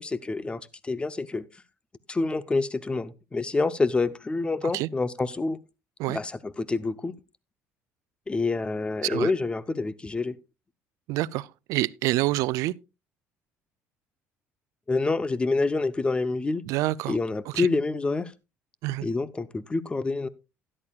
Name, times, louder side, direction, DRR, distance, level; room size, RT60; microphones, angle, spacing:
voice 1, 0.0-1.5 2.1-5.6 6.1-7.1 8.3-10.4 14.9-16.6 17.1-18.3 19.0-20.3, left 3 dB, 20° left, 0.8 m, -27 dB
voice 2, 11.1-12.7 16.7-17.2 17.5-17.7 18.8-19.1, right 18 dB, 75° right, 0.4 m, -27 dB
13.0 x 11.0 x 2.4 m
cardioid pair, 105°, 6 cm